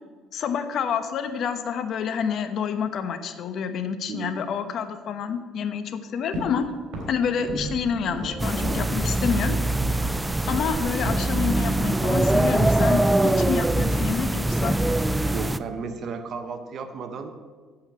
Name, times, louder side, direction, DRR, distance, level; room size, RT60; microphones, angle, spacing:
voice 1, 0.3-6.7 7.1-9.6 10.5-14.8, left 7 dB, 55° left, 9 dB, 0.9 m, -28 dB
sound 1, 6.3-6.6 6.9-8.9 9.2-9.4 9.8-10.1 10.5-10.8 11.0-11.9 12.2-13.5 14.5-15.4 15.7-16.2, equal, 75° right, 3.4 m, -36 dB
sound 2, 7.4-10.0, right 3 dB, 30° right, 2.7 m, -40 dB
sound 3, 8.4-15.6, right 1 dB, 10° right, 0.3 m, -23 dB
voice 2, 15.3-17.3, right 5 dB, 50° right, 7 dB, 1.0 m, -34 dB
8.7 x 8.0 x 6.0 m, 1.5 s
cardioid pair, 120°, 0 cm